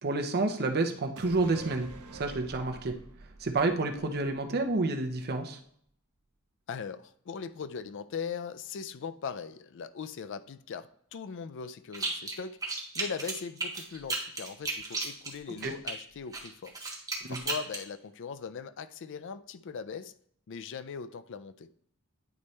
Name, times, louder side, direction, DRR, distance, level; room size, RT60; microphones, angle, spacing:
voice 1, 0.0-3.0 3.4-5.6 15.6-15.7 17.2-17.4, right 3 dB, 45° right, 5 dB, 0.8 m, -29 dB
sound 1, 1.2-4.7 5.1-5.2, right 3 dB, 75° right, 0.9 m, -47 dB
voice 2, 6.7-12.6 12.9-16.8 17.3-20.1 20.5-21.7, left 6 dB, 55° left, 12 dB, 0.4 m, -40 dB
sound 2, 11.9-12.4 12.6-15.9 16.3-17.8, right 3 dB, 15° right, 1.3 m, -34 dB
9.2 x 4.2 x 3.2 m, 0.65 s
head